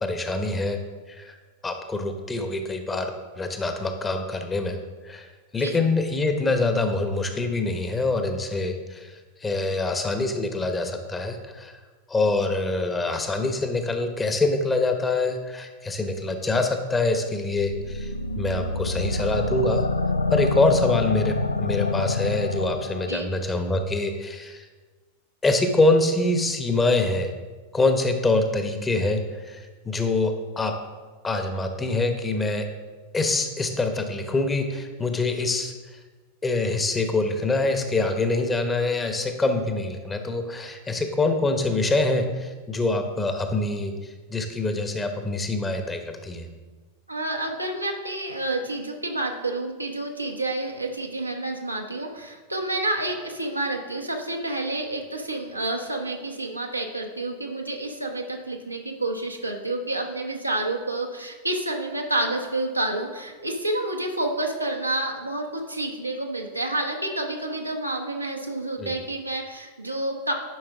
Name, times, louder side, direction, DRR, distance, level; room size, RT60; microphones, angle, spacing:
voice 1, 0.0-0.8 1.1-1.4 1.6-4.8 5.0-5.3 5.5-11.8 12.1-19.9 20.3-24.7 25.4-27.3 27.7-30.8 31.2-32.7 33.1-36.0 36.4-43.9 44.3-46.5 68.8-68.9, left 2 dB, 15° left, 6 dB, 0.9 m, -25 dB
sound 1, 17.5-23.1, left 2 dB, 80° left, 0.4 m, -27 dB
voice 2, 47.1-70.3, right 2 dB, 85° right, 1 dB, 0.9 m, -29 dB
10.5 x 5.2 x 3.6 m, 1.3 s
figure-of-eight pair, 90°, 0 cm